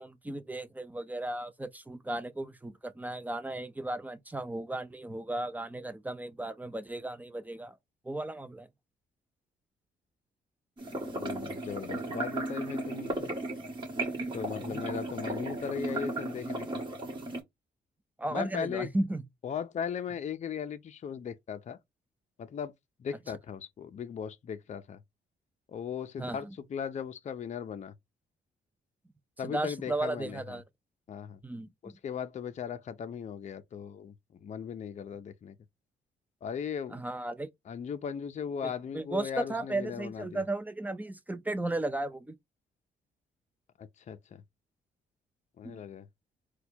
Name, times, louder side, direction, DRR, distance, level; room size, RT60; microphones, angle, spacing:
voice 1, 0.0-7.7 8.1-8.7 14.6-15.0 18.2-19.2 26.2-26.5 29.4-30.6 31.4-32.0 36.9-37.5 38.6-42.3 45.6-45.8, right 2 dB, 10° right, 0.4 m, -35 dB
sound 1, 10.8-17.4, right 2 dB, 25° right, 1.3 m, -35 dB
voice 2, 11.1-13.3 14.3-16.8 18.3-18.9 19.4-21.8 22.4-22.7 23.0-25.0 25.7-27.9 29.4-30.6 31.1-31.4 31.8-34.1 34.4-35.6 36.4-37.0 37.7-40.4 43.8-44.4 45.6-46.1, left 7 dB, 40° left, 0.5 m, -38 dB
4.2 x 2.3 x 2.7 m
cardioid pair, 90°, 18 cm